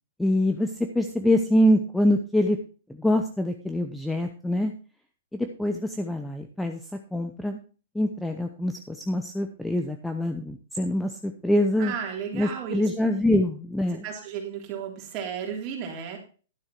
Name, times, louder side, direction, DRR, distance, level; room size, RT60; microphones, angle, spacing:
voice 1, 0.2-2.6 3.0-4.7 5.3-6.8 7.1-7.6 7.9-11.9 12.3-14.0, left 1 dB, 5° left, 6 dB, 0.7 m, -25 dB
voice 2, 11.8-12.8 14.0-16.2, right 7 dB, 25° right, 0 dB, 3.8 m, -33 dB
12.0 x 7.2 x 4.5 m, 0.37 s
hypercardioid pair, 165°, 0 cm